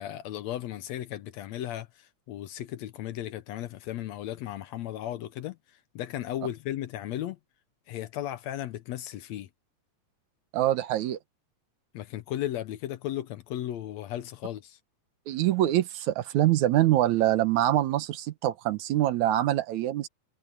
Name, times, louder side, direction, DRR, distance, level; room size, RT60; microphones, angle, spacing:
voice 1, 0.0-5.6 5.9-7.4 7.9-9.5 11.9-14.8, left 12 dB, 70° left, 1.9 m, -35 dB
voice 2, 10.5-11.2 15.3-20.1, right 14 dB, 75° right, 2.3 m, -24 dB
omnidirectional pair, 3.5 m